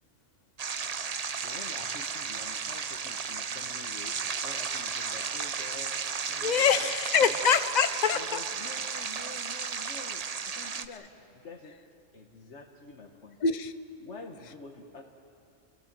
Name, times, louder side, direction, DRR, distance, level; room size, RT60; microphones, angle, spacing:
sound 1, 0.6-10.9, right 6 dB, 40° right, 0.6 m, -34 dB
voice 1, 1.4-6.0 6.3-7.4 8.1-11.8 12.1-13.4 14.0-15.0, left 3 dB, 65° left, 3 dB, 1.6 m, -47 dB
voice 2, 6.4-8.4 13.4-13.7, left 7 dB, 40° left, 11 dB, 0.8 m, -25 dB
28.5 x 17.0 x 7.5 m, 2.5 s
omnidirectional pair, 1.3 m